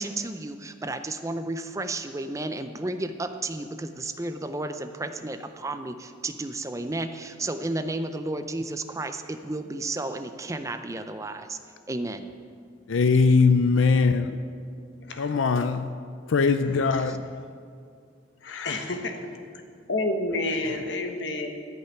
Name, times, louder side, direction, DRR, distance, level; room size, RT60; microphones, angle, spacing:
voice 1, 0.0-11.6 11.9-12.3 17.1-17.2, right 2 dB, 15° right, 0.5 m, -32 dB
voice 2, 12.9-14.4 15.2-15.9 16.3-17.3 18.4-18.8, left 4 dB, 80° left, 0.5 m, -21 dB
voice 3, 15.0-15.3 18.4-19.6 19.9-21.5, left 2 dB, 60° left, 1.2 m, -30 dB
13.5 x 5.7 x 9.2 m
head